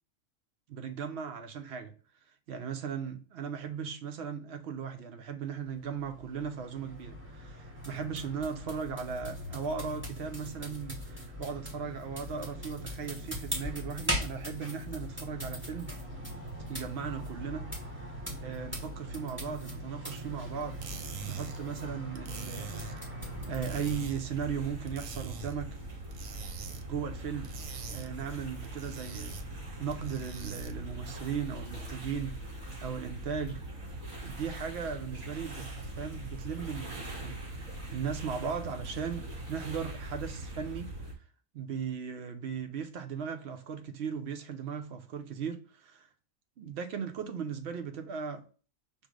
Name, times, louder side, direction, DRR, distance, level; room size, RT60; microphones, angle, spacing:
voice 1, 0.7-1.9 2.5-15.9 16.7-18.1 18.4-20.8 21.3-23.1 23.5-25.8 26.9-27.5 27.9-32.5 32.8-33.6 34.2-35.7 36.0-40.9 41.5-46.1 46.6-48.4, right 6 dB, 60° right, 0.9 m, -37 dB
sound 1, 5.6-24.1, equal, 10° right, 1.0 m, -40 dB
sound 2, 20.6-30.9, right 6 dB, 90° right, 1.1 m, -46 dB
sound 3, 23.2-41.1, right 1 dB, 40° right, 2.5 m, -42 dB
5.3 x 2.0 x 4.8 m
omnidirectional pair, 1.3 m